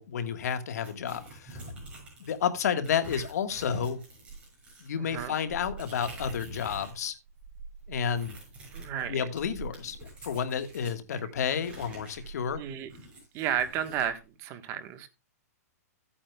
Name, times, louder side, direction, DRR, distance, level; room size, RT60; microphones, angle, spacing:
voice 1, 0.0-1.6 2.2-4.0 4.8-7.2 7.9-8.4 9.1-10.0 10.2-12.6, left 7 dB, 75° left, 9 dB, 1.5 m, -31 dB
sound 1, 0.8-2.4 2.8-7.0 7.3-11.0 11.5-14.1, right 2 dB, 15° right, 6.7 m, -45 dB
voice 2, 5.0-5.3 8.7-9.3 11.1-11.2 12.6-12.9 13.3-15.1, right 9 dB, 30° right, 9 dB, 1.3 m, -33 dB
15.5 x 8.7 x 2.3 m, 0.26 s
hypercardioid pair, 150°, 9 cm